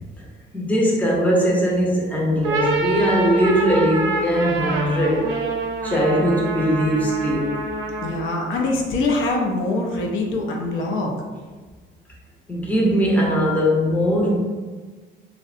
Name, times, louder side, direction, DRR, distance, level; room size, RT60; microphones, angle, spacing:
voice 1, 0.5-5.3 5.8-7.6 12.5-14.4, equal, 10° left, -3 dB, 0.6 m, -20 dB
sound 1, 2.3-8.3, right 2 dB, 90° right, 0.5 m, -26 dB
voice 2, 8.0-11.1, left 2 dB, 75° left, 0 dB, 0.5 m, -23 dB
2.6 x 2.1 x 2.4 m, 1.4 s
cardioid pair, 90°, 20 cm